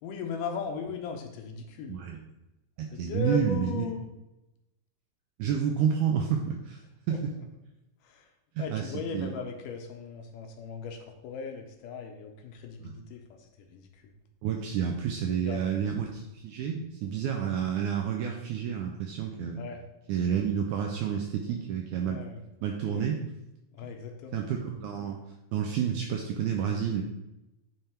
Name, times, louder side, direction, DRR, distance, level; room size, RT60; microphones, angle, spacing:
voice 1, 0.0-2.0 2.9-4.0 7.1-7.2 8.0-8.3 8.6-14.0 15.5-15.6 19.6-19.8 22.0-22.4 22.9-23.1 23.7-24.5, left 5 dB, 75° left, 4 dB, 2.2 m, -38 dB
voice 2, 1.9-2.2 2.8-3.9 5.4-6.8 7.1-7.3 8.6-9.3 12.8-12.9 14.4-19.6 20.1-22.2 22.6-23.2 24.3-25.2 25.5-27.0, right 8 dB, 80° right, 2 dB, 1.8 m, -30 dB
9.0 x 3.5 x 4.4 m, 0.94 s
omnidirectional pair, 4.1 m